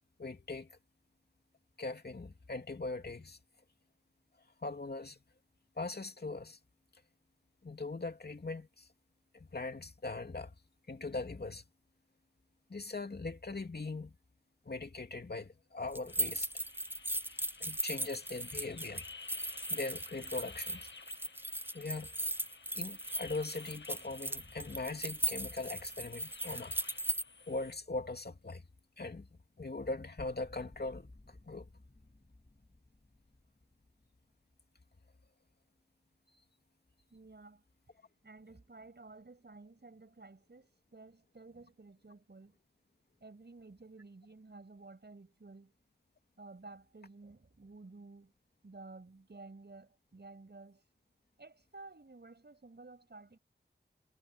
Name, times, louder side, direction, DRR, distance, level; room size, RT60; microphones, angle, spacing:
voice 1, 0.2-0.8 1.8-3.4 4.6-5.2 5.8-6.6 7.6-8.9 9.3-10.5 10.9-11.6 12.7-14.1 14.6-16.5 17.6-19.1 19.7-20.9 21.7-22.1 22.7-26.8 27.5-28.6 29.0-29.3 29.6-31.7, left 3 dB, 65° left, 2.6 m, -40 dB
sound 1, 15.9-27.2, right 1 dB, 10° right, 0.6 m, -38 dB
sound 2, 16.1-27.7, left 4 dB, 85° left, 1.5 m, -53 dB
sound 3, 24.3-29.2 29.5-29.7 29.9-35.5, left 2 dB, 40° left, 6.4 m, -59 dB
voice 2, 37.1-37.6 38.2-42.6 43.2-45.7 46.4-48.3 48.6-50.8 51.4-53.4, right 3 dB, 70° right, 6.5 m, -53 dB
wide cardioid pair, 60°, 18 cm